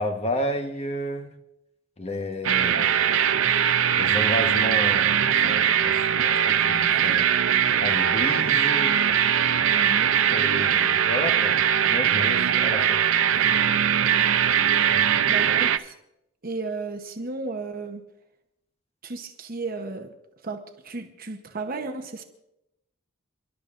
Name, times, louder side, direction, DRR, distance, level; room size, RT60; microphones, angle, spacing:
voice 1, 0.0-1.3 2.0-3.1 4.0-7.3 7.8-9.0 10.3-11.6 11.9-13.0 13.3-13.6 14.9-15.2, left 1 dB, 30° left, 5 dB, 1.2 m, -32 dB
sound 1, 2.4-15.8, right 9 dB, 85° right, 0.6 m, -21 dB
voice 2, 9.7-10.1 14.2-14.4 15.3-16.0 16.4-18.0 19.0-20.1 20.4-22.2, right 3 dB, 45° right, 4 dB, 1.0 m, -34 dB
29.5 x 11.5 x 2.5 m, 0.85 s
head